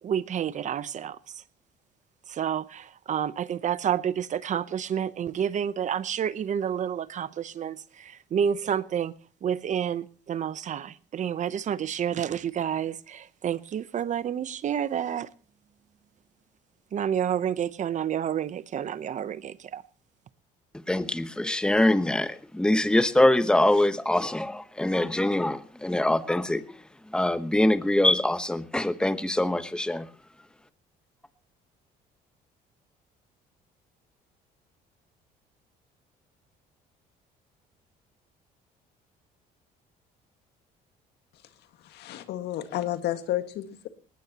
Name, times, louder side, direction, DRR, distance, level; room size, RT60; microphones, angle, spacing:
voice 1, 0.0-1.2 2.3-9.1 9.4-15.3 16.9-19.8, right 9 dB, 45° right, 0.8 m, -29 dB
voice 2, 20.9-26.6 27.1-30.1, left 1 dB, 5° left, 1.0 m, -24 dB
voice 3, 41.9-43.9, left 13 dB, 80° left, 1.8 m, -31 dB
19.5 x 19.0 x 2.9 m
cardioid pair, 110°, 17 cm